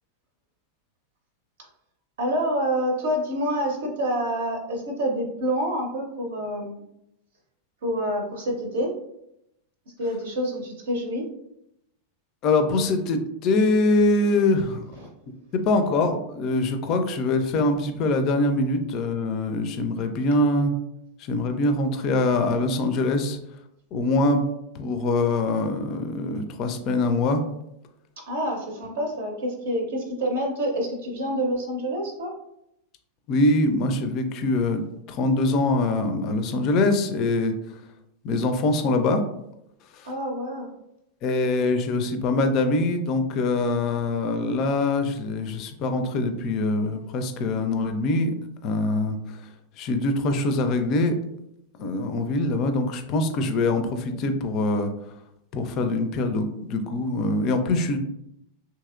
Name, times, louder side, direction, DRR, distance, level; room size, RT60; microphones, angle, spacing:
voice 1, 2.2-6.8 7.8-8.9 10.0-11.2 15.0-15.1 28.3-32.3 40.0-40.7, equal, 60° right, 1 dB, 0.7 m, -27 dB
voice 2, 12.4-14.8 15.5-20.7 21.2-23.4 23.9-24.4 24.7-27.4 33.3-34.8 35.1-37.5 38.2-39.2 39.9-40.1 41.2-48.3 48.6-49.2 49.8-51.2 51.8-54.9 55.5-58.0, left 2 dB, 40° left, 7 dB, 0.4 m, -23 dB
2.8 x 2.7 x 2.4 m, 0.81 s
figure-of-eight pair, 90°, 0 cm